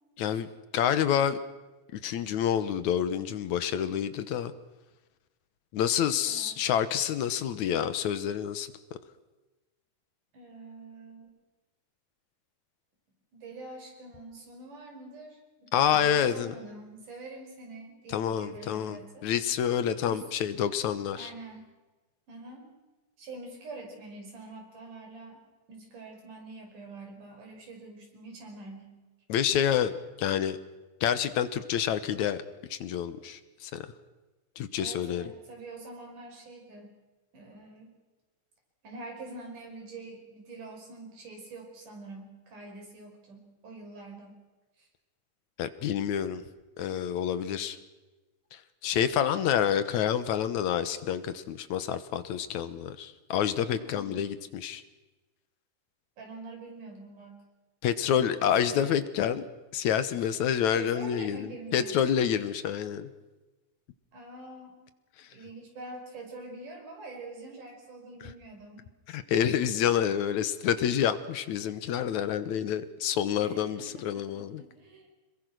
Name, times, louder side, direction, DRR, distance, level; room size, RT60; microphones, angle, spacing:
voice 1, 0.2-0.5 0.7-1.4 2.0-4.5 5.7-8.7 15.7-16.5 18.1-21.3 29.3-29.9 30.2-30.6 31.0-32.4 32.7-33.9 34.6-35.3 45.6-46.4 46.8-47.8 48.5-54.8 57.8-59.5 59.7-63.1 65.2-65.3 69.1-74.6, left 9 dB, 70° left, 12 dB, 2.4 m, -28 dB
voice 2, 6.3-6.6 7.2-7.3 10.3-11.4 13.3-19.3 20.0-20.3 21.1-21.7 22.3-22.7 23.2-25.4 25.7-29.0 34.8-36.9 37.3-37.9 38.8-44.4 44.8-44.9 53.7-54.3 56.2-57.4 58.3-59.0 60.2-60.3 60.7-62.1 64.1-64.7 65.3-68.9 73.4-75.1, right 2 dB, 85° right, 1 dB, 7.0 m, -45 dB
26.5 x 22.0 x 6.2 m, 1.1 s
omnidirectional pair, 3.5 m